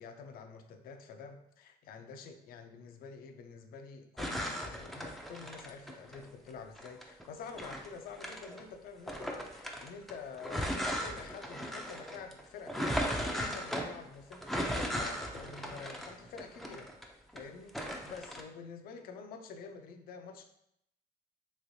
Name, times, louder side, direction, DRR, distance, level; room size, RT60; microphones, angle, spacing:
voice 1, 0.0-20.4, left 5 dB, 60° left, 6 dB, 0.4 m, -48 dB
sound 1, 4.2-6.2 6.8-8.6 9.1-17.4 17.7-18.4, equal, ahead, 0.4 m, -37 dB
3.1 x 3.0 x 2.6 m, 0.76 s
cardioid pair, 110°, 17 cm